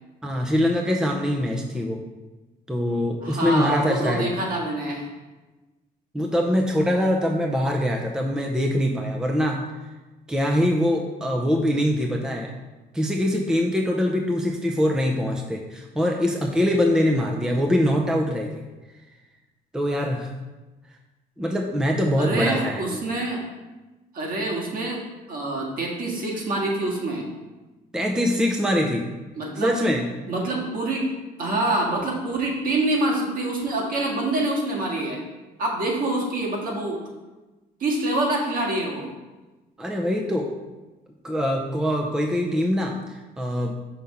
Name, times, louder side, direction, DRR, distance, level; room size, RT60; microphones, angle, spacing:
voice 1, 0.2-2.0 2.7-4.3 6.1-9.6 10.3-12.5 12.9-18.5 19.7-20.3 21.4-23.0 27.9-29.1 29.6-30.0 39.8-40.5 41.2-43.7, equal, 5° right, 1 dB, 0.5 m, -23 dB
voice 2, 3.2-5.1 22.2-23.4 24.1-25.0 25.3-27.3 29.3-29.7 30.2-31.1 31.4-35.2 35.6-37.0 37.8-39.1, right 2 dB, 55° right, -2 dB, 1.7 m, -26 dB
5.8 x 3.5 x 5.3 m, 1.2 s
cardioid pair, 110°, 17 cm